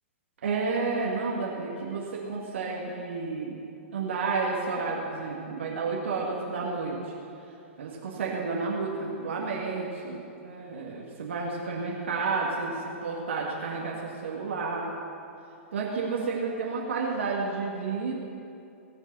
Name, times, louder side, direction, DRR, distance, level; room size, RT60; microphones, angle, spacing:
voice 1, 0.4-3.6 3.9-7.1 7.8-14.9 15.7-18.1, right 4 dB, 65° right, -3 dB, 1.9 m, -31 dB
19.0 x 6.4 x 6.2 m, 2.6 s
figure-of-eight pair, 110°, 7 cm